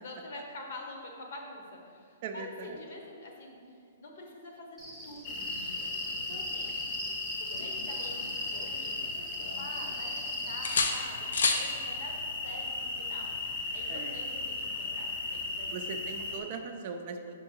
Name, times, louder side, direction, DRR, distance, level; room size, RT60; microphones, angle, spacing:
voice 1, 0.0-4.8 5.0-6.8 7.4-11.3 11.5-15.8 16.2-16.7, left 2 dB, 50° left, 1 dB, 1.0 m, -47 dB
voice 2, 2.2-2.8 6.3-6.4 13.9-14.2 15.7-17.4, right 4 dB, 35° right, 5 dB, 0.4 m, -40 dB
Cricket, 4.8-10.7, right 1 dB, ahead, 0.8 m, -44 dB
sound 1, 5.2-16.4, left 3 dB, 35° left, 0.7 m, -36 dB
sound 2, 7.5-9.0 9.4-10.2 10.6-11.7 13.6-13.8, left 4 dB, 85° left, 0.6 m, -32 dB
5.3 x 4.7 x 4.6 m, 2.2 s
hypercardioid pair, 175°, 0 cm